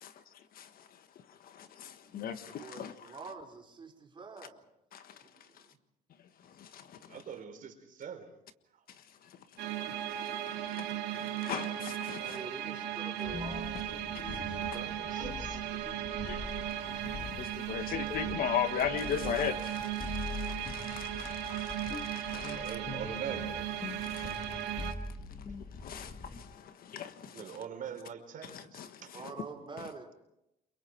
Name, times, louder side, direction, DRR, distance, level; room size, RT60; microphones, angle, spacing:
voice 1, 0.0-3.1 4.9-5.2 5.5-5.6 6.4-7.2 8.9-12.4 14.3-14.4 16.2-22.7 24.0-25.0 25.5-27.6 28.4-29.2, left 9 dB, 60° left, 1.5 m, -39 dB
voice 2, 2.4-4.6 5.2-5.7 12.1-15.1 29.1-30.1, right 4 dB, 30° right, 4.9 m, -47 dB
voice 3, 7.1-8.3 8.7-8.8 15.1-15.6 16.3-16.8 22.3-23.7 27.3-29.1, right 8 dB, 55° right, 4.2 m, -43 dB
sound 1, 9.6-24.9, right 11 dB, 85° right, 2.0 m, -37 dB
sound 2, 13.2-26.4, left 4 dB, 35° left, 2.1 m, -43 dB
30.0 x 23.0 x 4.6 m
cardioid pair, 110°, 17 cm